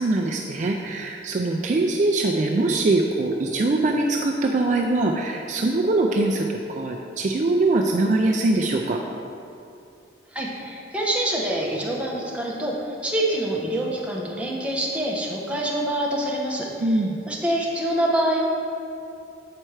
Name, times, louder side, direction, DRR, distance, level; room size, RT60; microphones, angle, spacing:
voice 1, 0.0-9.0 16.8-17.2, right 2 dB, 40° right, 1 dB, 0.4 m, -22 dB
voice 2, 10.3-17.0 17.3-18.5, right 1 dB, 5° right, -4 dB, 0.9 m, -26 dB
7.7 x 4.4 x 4.7 m, 2.6 s
head